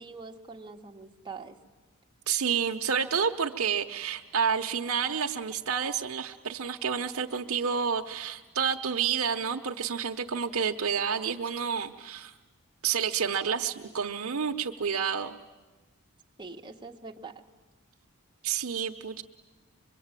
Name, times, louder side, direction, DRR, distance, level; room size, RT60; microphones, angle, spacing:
voice 1, 0.0-1.6 16.4-17.4, right 4 dB, 20° right, 1 dB, 1.5 m, -44 dB
voice 2, 2.3-12.3 12.8-15.4 18.4-19.2, right 7 dB, 85° right, 3 dB, 0.9 m, -29 dB
25.0 x 22.5 x 9.0 m, 1.2 s
head